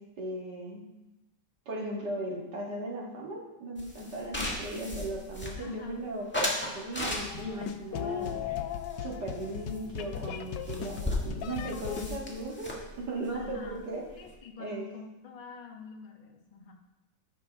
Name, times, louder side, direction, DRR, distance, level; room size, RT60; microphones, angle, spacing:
voice 1, 0.2-0.8 1.7-6.3 6.7-8.4 9.0-14.0 14.6-14.9, right 1 dB, 65° right, -2 dB, 2.3 m, -37 dB
sound 1, 3.8-5.9 6.3-7.6 8.2-9.5 9.7-9.9 10.2-10.3 10.5-14.3, left 1 dB, 5° left, 1.4 m, -36 dB
voice 2, 4.4-5.0 5.6-6.0 7.0-7.2 13.3-13.9 14.2-16.7, left 5 dB, 35° left, 1 dB, 0.8 m, -46 dB
sound 2, 7.0-12.1, left 8 dB, 75° left, 1.3 m, -37 dB
14.0 x 5.8 x 3.5 m, 0.99 s
omnidirectional pair, 2.0 m